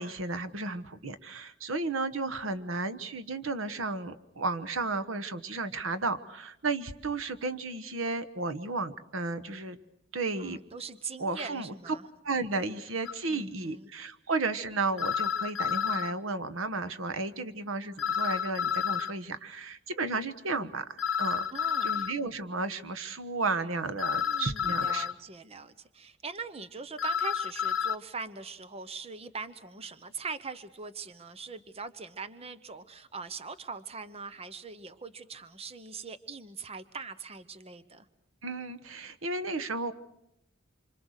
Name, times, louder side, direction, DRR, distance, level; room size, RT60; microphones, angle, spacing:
voice 1, 0.0-9.8 10.1-10.6 11.2-11.7 12.2-21.5 21.8-25.1 38.4-39.9, right 3 dB, 80° right, 12 dB, 1.3 m, -33 dB
voice 2, 10.4-12.0 13.3-13.9 21.5-22.1 24.3-38.1, right 4 dB, 30° right, 13 dB, 0.9 m, -42 dB
sound 1, 13.0-13.1 15.0-16.1 18.0-19.1 21.0-22.1 24.0-25.1 27.0-27.9, left 8 dB, 70° left, 0.9 m, -30 dB
27.0 x 25.5 x 6.5 m, 0.81 s
head